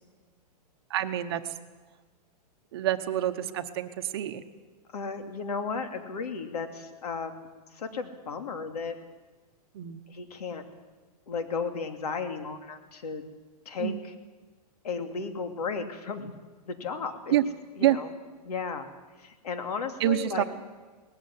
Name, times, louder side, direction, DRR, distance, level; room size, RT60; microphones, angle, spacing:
voice 1, 0.9-1.5 2.7-4.4 9.7-10.0 13.8-14.0 17.3-17.4 17.8-18.0 20.0-20.4, right 13 dB, 40° right, 8 dB, 1.0 m, -27 dB
voice 2, 4.9-9.0 10.1-10.6 11.3-13.2 13.6-14.1 14.8-16.3 16.6-17.4 17.8-18.1 18.4-18.9 19.2-20.4, left 5 dB, 70° left, 7 dB, 2.8 m, -34 dB
19.0 x 14.5 x 9.8 m, 1.3 s
hypercardioid pair, 175°, 21 cm